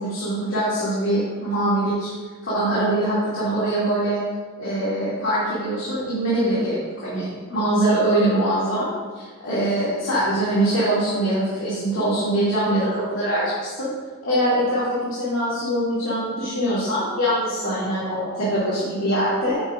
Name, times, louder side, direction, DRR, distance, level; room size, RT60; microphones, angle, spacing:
voice 1, 0.0-2.1 2.4-4.2 4.6-8.9 9.1-13.9 14.2-19.6, right 1 dB, 85° left, -10 dB, 2.4 m, -23 dB
8.5 x 8.4 x 2.5 m, 1.5 s
head